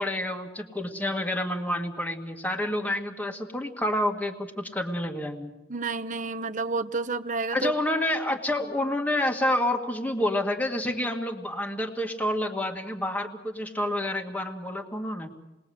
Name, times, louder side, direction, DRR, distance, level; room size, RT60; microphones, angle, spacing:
voice 1, 0.0-5.5 7.5-15.3, left 1 dB, 10° left, 2.0 m, -28 dB
voice 2, 5.7-7.7, right 3 dB, 45° right, 1.0 m, -30 dB
28.5 x 21.0 x 7.9 m
head